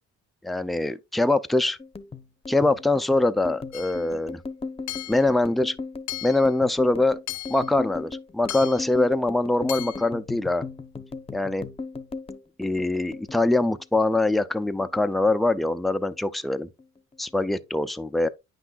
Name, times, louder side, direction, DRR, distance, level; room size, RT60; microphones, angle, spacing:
voice 1, 0.4-1.8 2.5-4.4 5.1-5.8 6.2-7.2 7.5-10.6 11.3-11.7 12.6-16.7 17.2-18.3, left 2 dB, ahead, 0.4 m, -23 dB
sound 1, 1.8-14.4 14.6-15.7 16.0-16.3 16.6-17.3, left 4 dB, 20° left, 0.8 m, -37 dB
Hammer / Chink clink, 3.7-4.1 4.9-5.3 6.1-6.5 7.3-7.7 8.5-8.9 9.7-10.1, left 16 dB, 75° left, 0.8 m, -36 dB
9.1 x 5.9 x 2.4 m
cardioid pair, 90°, 30 cm